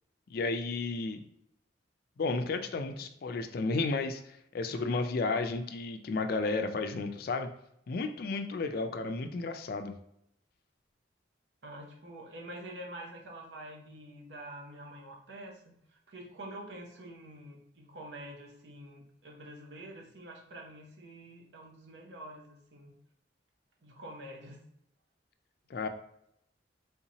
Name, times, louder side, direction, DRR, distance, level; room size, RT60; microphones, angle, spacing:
voice 1, 0.3-1.2 2.2-7.5 7.9-9.9 25.7-25.9, left 3 dB, 55° left, 7 dB, 0.3 m, -32 dB
voice 2, 11.6-15.6 15.9-22.9 23.8-24.6, right 1 dB, 70° right, 1 dB, 0.7 m, -47 dB
3.4 x 2.7 x 2.8 m, 0.76 s
head